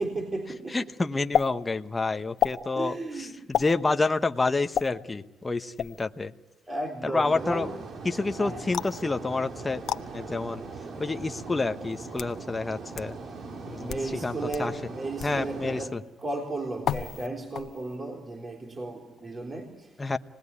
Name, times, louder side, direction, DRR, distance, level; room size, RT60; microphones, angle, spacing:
voice 1, 0.0-1.1 2.8-3.7 6.7-7.8 8.3-8.7 10.3-10.4 13.8-20.2, right 2 dB, 30° right, 3.7 m, -35 dB
voice 2, 0.7-2.9 3.6-6.3 7.0-7.7 8.0-9.8 10.1-10.6 11.0-13.2 13.7-13.9 14.2-14.7 15.2-16.0 20.0-20.2, left 3 dB, 20° left, 1.0 m, -28 dB
sound 1, 1.3-1.5 2.4-2.6 3.5-3.7 4.7-4.9 5.8-6.0 8.7-9.0 9.9-10.0 11.0-11.1 11.9-12.4 13.0-13.1 13.8-14.1 14.5-14.6 15.2-15.4 16.8-17.3 17.5-18.0, left 9 dB, 65° left, 1.1 m, -29 dB
sound 2, 7.2-15.9, right 4 dB, 55° right, 2.8 m, -40 dB
27.5 x 20.0 x 9.8 m
cardioid pair, 90°, 0 cm